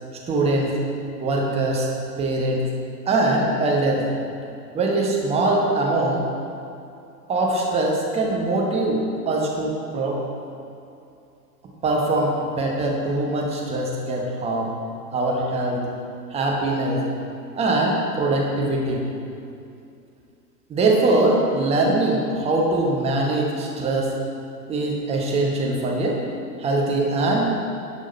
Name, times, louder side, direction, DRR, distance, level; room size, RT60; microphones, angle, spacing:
voice 1, 0.3-0.7 1.2-1.9 2.2-2.7 3.1-4.0 4.7-6.2 7.3-10.2 11.8-14.7 15.1-15.8 16.3-17.0 17.5-19.0 20.7-24.1 24.7-26.2 26.6-27.5, right 2 dB, 10° right, -1 dB, 0.9 m, -22 dB
11.0 x 5.1 x 4.0 m, 2.6 s
figure-of-eight pair, 100°, 50 cm